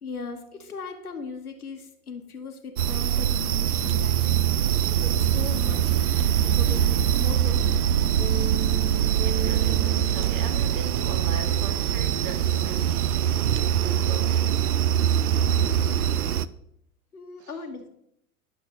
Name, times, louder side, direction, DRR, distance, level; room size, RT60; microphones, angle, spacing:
voice 1, 0.0-6.0 6.5-8.0 17.1-17.9, left 4 dB, 85° left, 1.4 m, -39 dB
sound 1, 2.8-16.4, right 10 dB, 80° right, 0.5 m, -23 dB
sound 2, 3.8-12.6, right 2 dB, 20° right, 1.6 m, -39 dB
voice 2, 9.2-13.4 13.7-14.5 17.4-17.6, right 4 dB, 45° right, 1.7 m, -39 dB
11.0 x 6.6 x 3.8 m
figure-of-eight pair, 90°, 44 cm